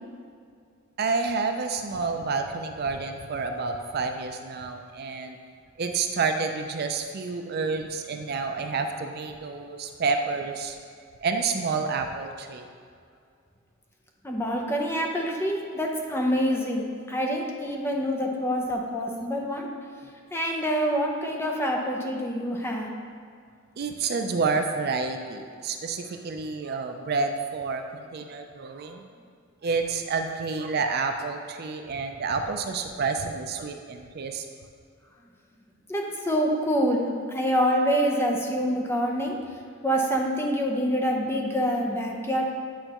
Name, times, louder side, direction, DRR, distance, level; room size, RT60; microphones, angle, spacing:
voice 1, 1.0-5.4 5.8-10.8 11.2-12.7 23.8-29.0 29.6-34.5, right 4 dB, 50° right, 5 dB, 0.4 m, -29 dB
voice 2, 14.2-19.7 20.3-22.9 35.9-42.5, equal, 10° left, 0 dB, 0.7 m, -26 dB
8.9 x 5.3 x 3.0 m, 2.2 s
head